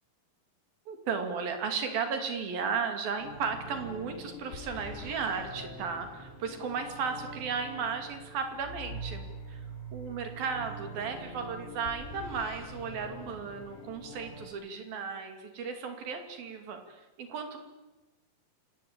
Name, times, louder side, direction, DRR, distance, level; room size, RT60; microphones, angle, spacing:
voice 1, 0.9-9.6 9.9-17.6, right 5 dB, 70° right, 6 dB, 4.5 m, -35 dB
sound 1, 3.2-14.5, right 1 dB, 80° left, 5.4 m, -44 dB
27.5 x 19.0 x 8.8 m, 1.1 s
omnidirectional pair, 4.4 m